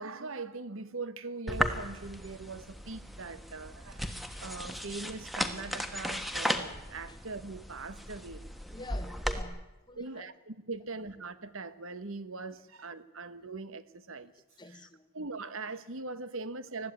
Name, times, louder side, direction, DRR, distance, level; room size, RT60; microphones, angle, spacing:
voice 1, 0.0-8.5 9.9-14.3 14.7-14.8 15.1-16.9, right 3 dB, 65° right, 1.2 m, -41 dB
sound 1, 1.5-9.4, equal, ahead, 1.3 m, -36 dB
voice 2, 8.7-10.3 14.6-15.1, left 3 dB, 20° left, 1.1 m, -48 dB
20.5 x 15.0 x 9.4 m
head